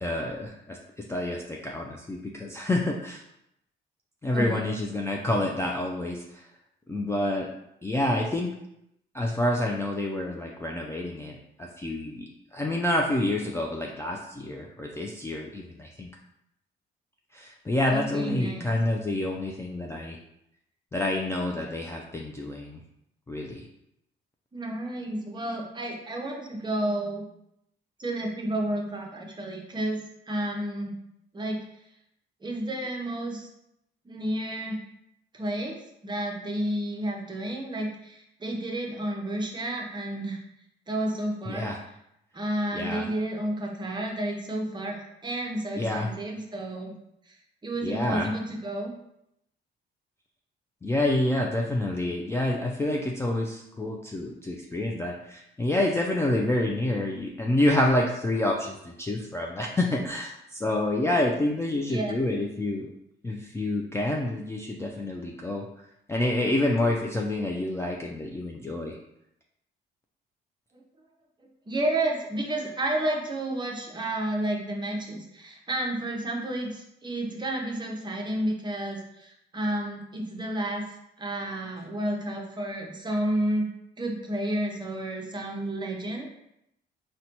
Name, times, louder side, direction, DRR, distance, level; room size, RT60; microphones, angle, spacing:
voice 1, 0.0-3.2 4.2-6.4 6.9-7.5 7.8-8.5 9.1-12.2 12.5-16.1 17.3-20.2 20.9-22.8 23.3-23.6 41.5-41.8 42.7-43.1 45.7-46.1 47.8-48.3 50.8-62.9 63.2-65.7 66.1-69.0, left 1 dB, 15° left, -1 dB, 0.3 m, -28 dB
voice 2, 4.3-4.8 17.9-18.7 24.5-27.2 28.0-30.0 30.3-30.9 31.3-31.6 32.4-33.5 34.0-34.8 35.3-40.4 40.9-41.7 42.3-46.9 47.3-47.4 47.6-48.9 61.9-62.1 70.7-70.8 71.7-80.9 81.2-83.7 84.0-86.3, right 1 dB, 20° right, 0 dB, 0.7 m, -31 dB
3.9 x 2.2 x 2.8 m, 0.80 s
cardioid pair, 90°, 20 cm